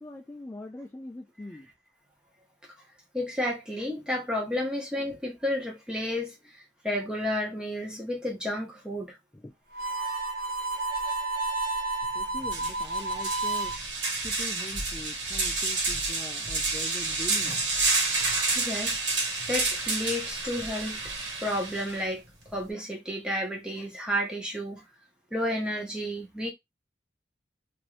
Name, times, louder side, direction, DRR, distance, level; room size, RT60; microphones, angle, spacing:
voice 1, 0.0-1.7 9.3-9.5 12.1-13.7 14.2-17.6, left 1 dB, 15° left, 0.3 m, -42 dB
voice 2, 3.1-9.2 18.5-21.0 21.4-22.2 22.5-24.8 25.3-26.5, left 1 dB, 5° right, 0.9 m, -31 dB
Harmonica, 9.7-13.8, right 2 dB, 55° right, 0.9 m, -31 dB
sound 1, 12.0-12.1 12.5-22.0, right 3 dB, 75° right, 1.4 m, -29 dB
3.0 x 2.6 x 3.1 m
head